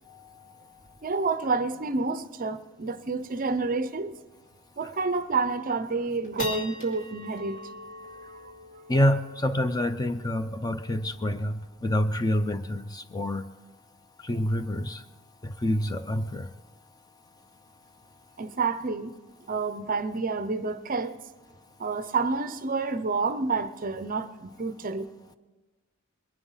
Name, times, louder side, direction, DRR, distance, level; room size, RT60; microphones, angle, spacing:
voice 1, 1.0-4.2 4.8-7.6 18.4-19.1 19.5-21.2 21.8-25.1, right 4 dB, 40° right, 0.6 m, -29 dB
sound 1, 3.7-4.0 4.5-4.6 5.1-5.5 5.9-12.5, left 2 dB, 40° left, 2.7 m, -43 dB
voice 2, 8.9-13.4 14.2-15.0 15.4-16.5, left 1 dB, 20° left, 0.5 m, -27 dB
21.0 x 11.0 x 5.6 m
head